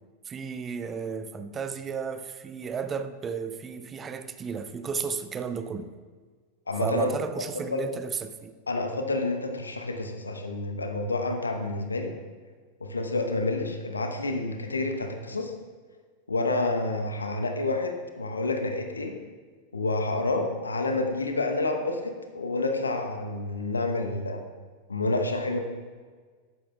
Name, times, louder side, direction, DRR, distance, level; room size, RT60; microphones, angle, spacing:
voice 1, 0.2-5.9 6.8-8.6, right 6 dB, 20° right, 11 dB, 0.5 m, -33 dB
voice 2, 6.7-7.1 7.7-7.8 8.7-12.2 12.8-15.5 16.3-19.2 19.7-24.4 24.9-25.6, left 2 dB, 75° left, 5 dB, 0.9 m, -29 dB
13.0 x 10.0 x 2.3 m, 1.5 s
figure-of-eight pair, 90°, 0 cm